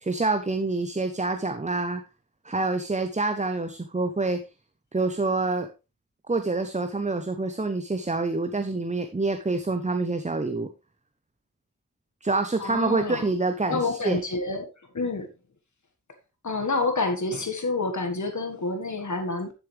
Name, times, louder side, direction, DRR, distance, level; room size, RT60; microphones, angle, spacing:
voice 1, 0.0-2.0 2.4-4.4 4.9-5.7 6.3-10.7 12.2-14.2, right 3 dB, 25° right, 8 dB, 0.8 m, -27 dB
voice 2, 12.6-13.2 13.7-14.7 14.9-15.3 16.4-19.5, left 3 dB, 70° left, 5 dB, 1.6 m, -28 dB
10.5 x 7.1 x 3.3 m, 0.28 s
wide cardioid pair, 85°, 30 cm